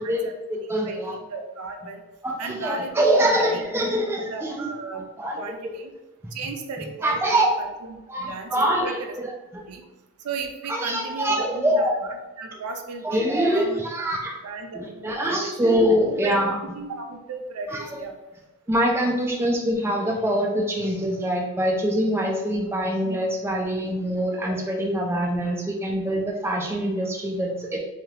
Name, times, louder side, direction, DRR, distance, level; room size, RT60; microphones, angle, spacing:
voice 1, 0.0-1.2 2.2-4.7 5.2-5.7 7.0-7.5 8.1-9.3 10.7-11.9 13.0-14.4 14.7-16.6 17.7-18.0 18.7-27.8, right 1 dB, 10° right, -1 dB, 0.3 m, -24 dB
voice 2, 0.8-2.0 2.4-3.6 4.2-5.1 5.4-5.9 6.3-8.9 9.6-9.9 10.2-11.8 12.4-13.3 13.5-14.2 14.4-15.7 16.2-16.4 16.7-18.1, right 3 dB, 80° right, 4 dB, 0.4 m, -35 dB
3.3 x 2.3 x 2.7 m, 1.1 s
head